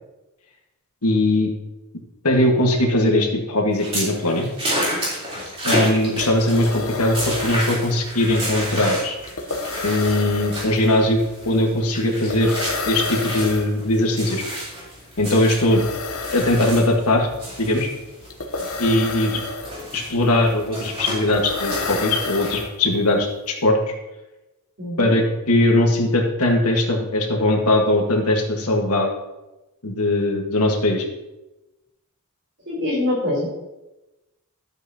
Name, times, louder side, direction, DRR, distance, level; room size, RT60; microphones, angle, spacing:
voice 1, 1.0-1.5 2.2-4.5 5.6-9.2 9.8-12.6 12.9-14.4 15.2-15.8 16.3-17.3 17.6-17.9 18.8-19.4 19.9-23.8 25.0-29.1 29.8-31.0, left 1 dB, 90° left, 2 dB, 1.7 m, -20 dB
sound 1, 3.7-17.1 17.4-22.5, equal, 25° right, 3.7 m, -31 dB
sound 2, 5.7-5.8 6.0-23.1, left 3 dB, 75° left, 1.1 m, -31 dB
voice 2, 24.8-25.1 32.7-33.5, left 1 dB, 55° right, -3 dB, 3.7 m, -24 dB
12.0 x 7.9 x 2.9 m, 1.0 s
head